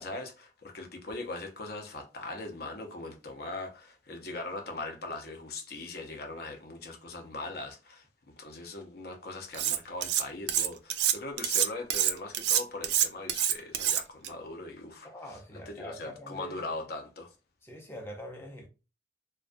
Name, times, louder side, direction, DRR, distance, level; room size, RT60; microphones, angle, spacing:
voice 1, 0.0-8.1 8.4-15.1 15.7-17.3, left 2 dB, 55° left, 0.6 m, -40 dB
Cutlery silverware, 9.5-10.2 10.5-14.3, right 10 dB, 65° right, 0.3 m, -27 dB
voice 2, 15.0-16.7 17.6-18.7, equal, 15° left, 0.5 m, -44 dB
2.2 x 2.2 x 2.4 m
head